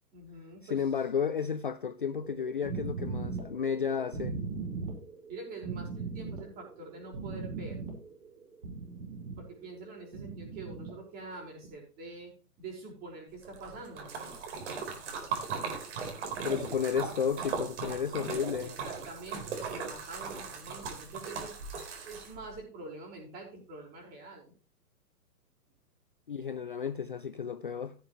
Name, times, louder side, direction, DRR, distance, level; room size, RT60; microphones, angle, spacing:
voice 1, 0.1-0.8 5.3-7.8 9.4-12.3 12.6-14.3 18.6-21.6 22.0-24.5, right 3 dB, 20° right, 5.3 m, -45 dB
voice 2, 0.6-4.5 16.4-18.7 26.3-27.9, left 7 dB, 35° left, 0.4 m, -32 dB
sound 1, 2.1-9.4 10.0-10.9 11.6-11.7, right 4 dB, 80° right, 5.8 m, -39 dB
Splash splatter, 13.4-22.6, right 5 dB, 45° right, 4.3 m, -38 dB
16.5 x 7.6 x 3.2 m
hypercardioid pair, 160°, 46 cm